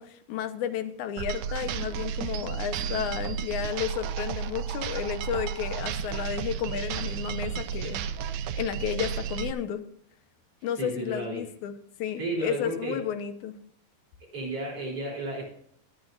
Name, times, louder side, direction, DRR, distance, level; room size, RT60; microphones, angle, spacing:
voice 1, 0.0-8.0 8.5-9.8 10.6-11.7 12.0-13.6, left 9 dB, 70° left, 9 dB, 2.2 m, -32 dB
sound 1, 1.2-9.5, right 8 dB, 75° right, 1.9 m, -32 dB
voice 2, 10.8-11.4 12.2-13.0 14.3-15.4, right 1 dB, 40° right, -3 dB, 4.4 m, -32 dB
23.5 x 9.4 x 2.6 m, 0.68 s
omnidirectional pair, 4.1 m